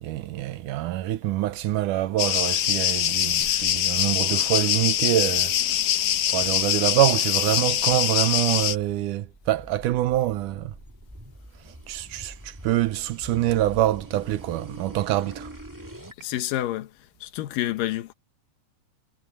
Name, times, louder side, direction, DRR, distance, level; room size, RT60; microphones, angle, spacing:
voice 1, 0.0-5.5 6.3-10.8 11.9-15.5, right 14 dB, 80° right, 2.2 m, -25 dB
sound 1, 2.2-8.8, left 11 dB, 70° left, 2.6 m, -23 dB
sound 2, 9.2-16.2, right 1 dB, 10° right, 1.2 m, -44 dB
voice 2, 16.2-16.9 17.2-18.1, left 14 dB, 85° left, 2.7 m, -28 dB
omnidirectional pair, 3.8 m